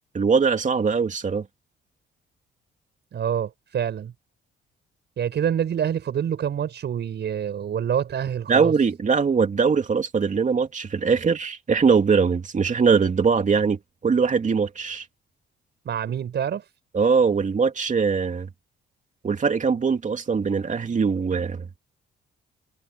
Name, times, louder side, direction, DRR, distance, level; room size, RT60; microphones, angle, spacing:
voice 1, 0.1-1.5 8.5-15.0 16.9-18.5 19.2-21.7, right 5 dB, 40° right, 2.8 m, -21 dB
voice 2, 3.1-4.1 5.2-8.7 15.8-16.7, right 8 dB, 60° right, 6.3 m, -26 dB
cardioid pair, 90°, 20 cm